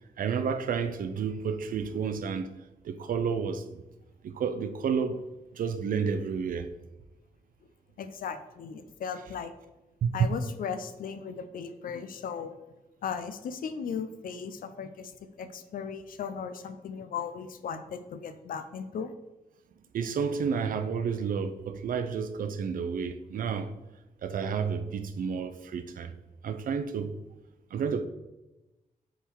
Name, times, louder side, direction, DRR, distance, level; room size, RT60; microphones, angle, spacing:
voice 1, 0.2-2.5 2.8-3.8 4.2-5.2 5.5-6.7 10.0-10.3 19.9-23.7 24.2-26.1 26.4-27.1 27.7-28.1, right 6 dB, 75° right, 0.6 m, -30 dB
voice 2, 8.0-9.5 10.1-12.6 13.0-15.1 15.4-19.1, left 6 dB, 80° left, 0.6 m, -37 dB
7.1 x 3.8 x 4.6 m
wide cardioid pair, 110°, 14 cm